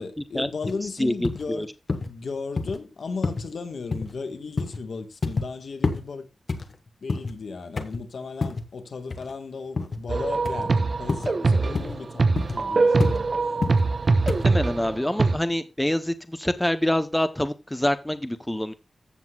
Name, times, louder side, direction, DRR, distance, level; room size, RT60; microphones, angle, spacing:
voice 1, 0.0-1.7 2.0-6.3 7.0-13.3, left 4 dB, 70° left, 1.3 m, -35 dB
sound 1, 0.6-0.8 1.2-1.4 1.9-2.1 2.6-2.8 3.2-3.5 3.9-4.1 4.6-4.8 5.2-5.5 5.8-6.0 6.5-7.4 7.8-8.0 8.4-8.7 9.1-9.3 9.8-10.0 10.4-10.7 11.1-11.3 11.7-12.0 12.4-12.6 13.0-13.2 13.6-13.8 14.3-14.5, left 3 dB, 45° left, 1.0 m, -28 dB
voice 2, 1.0-1.7 14.1-18.7, left 1 dB, 10° left, 0.6 m, -26 dB
sound 2, 10.1-15.4, right 3 dB, 40° right, 0.6 m, -23 dB
14.5 x 7.8 x 2.2 m
wide cardioid pair, 150°, 0 cm